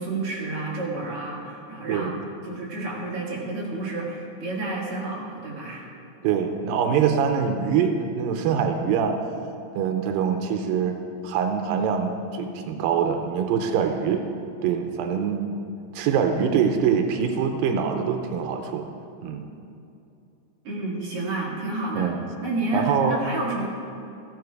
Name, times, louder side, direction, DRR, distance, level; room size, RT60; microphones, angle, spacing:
voice 1, 0.0-2.2 2.4-5.9 20.6-22.1 22.4-23.7, right 2 dB, 45° right, -4 dB, 2.8 m, -30 dB
voice 2, 6.2-9.2 9.8-11.0 11.2-14.2 14.6-15.5 15.9-18.9 19.2-19.5 21.9-22.2 22.7-23.2, right 7 dB, 90° right, 5 dB, 2.4 m, -24 dB
14.0 x 10.0 x 4.7 m, 2.6 s
omnidirectional pair, 4.0 m